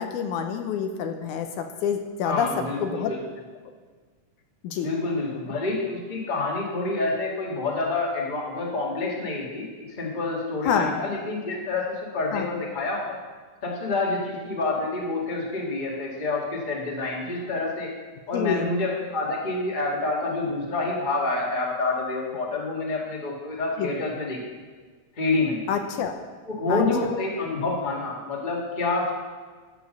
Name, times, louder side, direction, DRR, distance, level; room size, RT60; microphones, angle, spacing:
voice 1, 0.0-3.1 4.6-4.9 10.7-11.0 12.3-12.5 18.3-18.7 23.8-23.9 25.7-26.2 26.7-27.1, left 7 dB, 80° left, 6 dB, 2.2 m, -27 dB
voice 2, 2.2-3.2 4.8-13.2 13.6-17.9 18.3-24.4 25.1-25.6 26.5-29.1, left 3 dB, 20° left, -2 dB, 1.6 m, -28 dB
11.5 x 7.1 x 6.6 m, 1.5 s
omnidirectional pair, 3.6 m